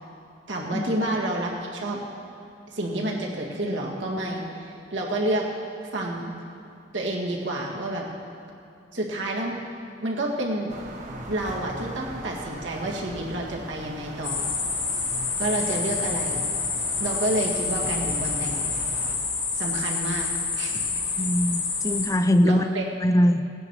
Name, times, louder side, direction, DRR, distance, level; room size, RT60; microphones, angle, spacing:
voice 1, 0.5-2.0 2.7-5.5 5.9-6.3 6.9-8.1 8.9-9.6 10.0-10.7 11.3-14.5 15.4-16.4 17.0-18.6 19.5-20.8 21.1-21.2 22.4-22.8, right 1 dB, 85° right, -2 dB, 2.0 m, -29 dB
sound 1, 10.7-19.2, right 1 dB, 40° right, 1.2 m, -39 dB
sound 2, 14.2-22.1, left 4 dB, 90° left, 2.6 m, -28 dB
voice 2, 21.2-22.6 23.0-23.5, equal, 20° left, 10 dB, 0.4 m, -21 dB
17.0 x 9.7 x 4.7 m, 2.6 s
head